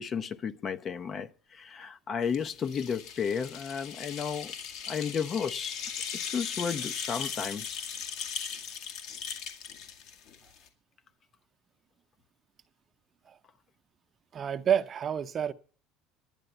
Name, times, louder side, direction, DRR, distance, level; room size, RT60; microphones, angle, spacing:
voice 1, 0.0-4.5 4.9-5.8 6.3-7.8, left 6 dB, 40° left, 0.8 m, -33 dB
sound 1, 2.3-10.7, left 7 dB, 65° left, 2.0 m, -38 dB
voice 2, 14.3-15.5, right 8 dB, 40° right, 0.8 m, -28 dB
10.5 x 8.7 x 8.0 m
supercardioid pair, 95°, 0 cm